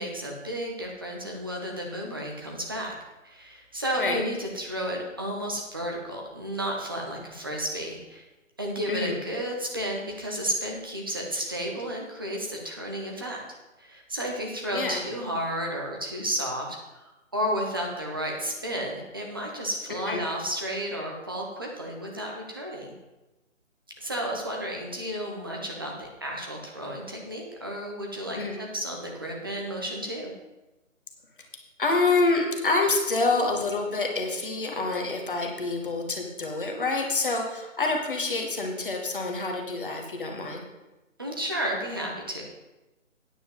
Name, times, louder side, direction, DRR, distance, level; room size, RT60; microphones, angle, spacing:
voice 1, 0.0-2.9 3.2-8.2 8.6-13.4 13.8-22.9 24.0-30.3 41.2-42.4, equal, 15° right, -1 dB, 0.9 m, -32 dB
voice 2, 14.7-15.0 19.9-20.2 28.4-28.6 31.8-40.6, left 3 dB, 40° left, 2 dB, 1.6 m, -27 dB
9.4 x 5.2 x 7.9 m, 1.0 s
figure-of-eight pair, 170°, 40 cm